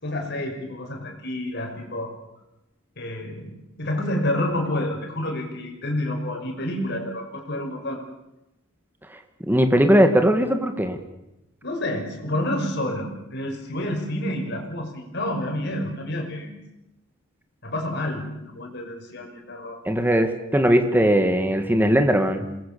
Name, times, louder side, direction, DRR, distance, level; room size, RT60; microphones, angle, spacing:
voice 1, 0.0-2.2 3.0-3.5 3.8-8.0 11.6-16.5 17.6-19.8, left 1 dB, 55° left, 2 dB, 5.9 m, -29 dB
voice 2, 9.5-11.0 19.9-22.6, equal, 10° right, 7 dB, 1.9 m, -19 dB
27.5 x 20.5 x 7.0 m, 0.93 s
head